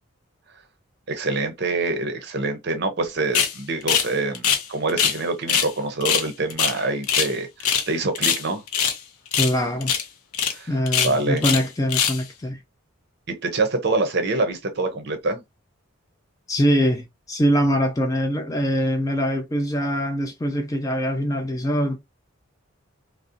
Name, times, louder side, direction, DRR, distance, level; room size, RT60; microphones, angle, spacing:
voice 1, 1.1-8.6 10.5-11.4 13.3-15.4, right 3 dB, 50° right, 0.6 m, -26 dB
sound 1, 3.3-3.5 3.9-4.1 4.3-5.2 5.5-5.7 6.0-7.3 7.6-7.9 8.1-9.0 9.3-9.6 9.8-10.0 10.3-10.5 10.9-11.6 11.9-12.2, left 8 dB, 90° left, 0.6 m, -22 dB
voice 2, 9.4-9.9 10.7-12.6 16.5-22.0, equal, 15° left, 0.3 m, -23 dB
2.6 x 2.0 x 2.4 m
head